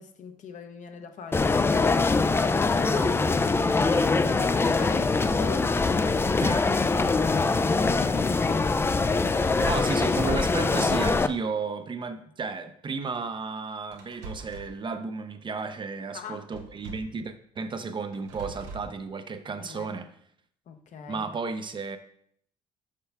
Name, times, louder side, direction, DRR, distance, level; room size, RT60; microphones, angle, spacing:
voice 1, 0.0-2.4 2.7-8.8 16.1-16.4 19.6-19.9 20.7-21.3, left 6 dB, 55° left, 0.8 m, -41 dB
sound 1, 1.3-11.3, left 3 dB, 15° left, 0.3 m, -23 dB
voice 2, 9.6-20.1 21.1-22.0, right 4 dB, 30° right, 0.5 m, -33 dB
sound 2, 13.9-14.8 16.5-17.2 18.1-19.0, right 3 dB, 85° right, 0.8 m, -42 dB
6.6 x 4.3 x 3.4 m
supercardioid pair, 70°, 15 cm